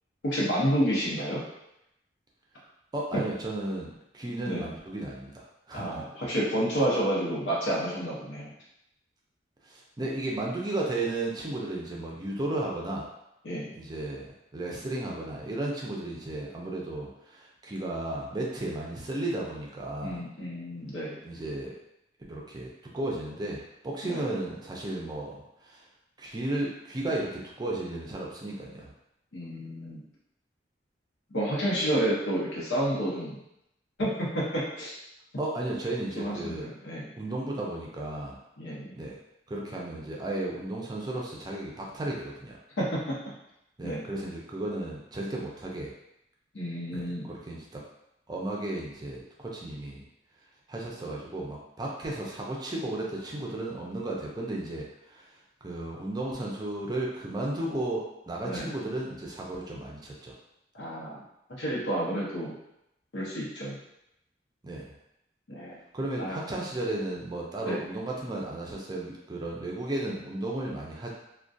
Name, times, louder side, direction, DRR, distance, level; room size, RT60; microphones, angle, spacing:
voice 1, 0.2-1.4 3.1-3.2 4.5-4.7 5.7-8.5 13.4-13.7 20.0-21.2 24.0-24.2 29.3-30.0 31.3-33.4 34.0-35.0 36.2-37.1 38.6-38.9 42.8-43.2 43.8-44.0 46.5-47.3 58.5-58.7 60.7-61.2 61.5-62.5 63.1-63.8 65.5-65.8 66.2-66.4 67.6-67.8, equal, 85° left, -6 dB, 0.8 m, -30 dB
voice 2, 2.9-6.0 9.6-13.1 13.7-20.2 21.2-21.7 22.3-25.8 26.2-28.9 35.4-36.7 37.2-38.4 38.9-39.2 39.5-42.6 43.8-45.9 46.9-47.8 48.3-50.0 50.7-55.2 55.6-60.3 64.6-64.9 65.9-71.1, right 2 dB, 25° right, -2 dB, 0.4 m, -34 dB
2.3 x 2.2 x 2.5 m, 0.83 s
head